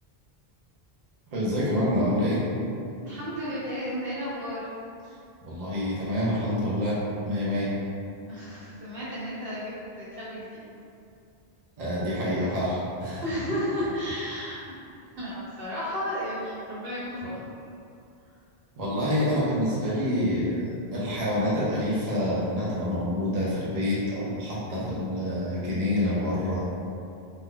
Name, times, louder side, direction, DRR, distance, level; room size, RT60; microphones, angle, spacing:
voice 1, 1.3-2.4 5.5-7.0 7.2-7.7 11.8-13.2 18.8-26.6, left 1 dB, 50° right, -8 dB, 0.6 m, -27 dB
voice 2, 3.0-4.6 8.3-10.6 13.2-14.7 15.1-17.5, equal, 65° right, -10 dB, 1.2 m, -33 dB
2.6 x 2.1 x 3.7 m, 2.6 s
omnidirectional pair, 1.0 m